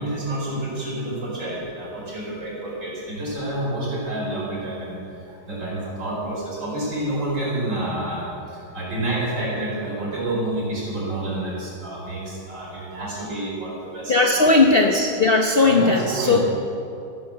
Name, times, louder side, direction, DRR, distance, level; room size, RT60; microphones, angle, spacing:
voice 1, 0.0-5.0 5.5-8.3 8.7-14.5 15.6-16.4, right 1 dB, 60° right, -5 dB, 5.4 m, -28 dB
voice 2, 14.1-16.4, left 3 dB, 50° left, 2 dB, 0.7 m, -17 dB
14.5 x 10.0 x 7.4 m, 2.7 s
omnidirectional pair, 2.2 m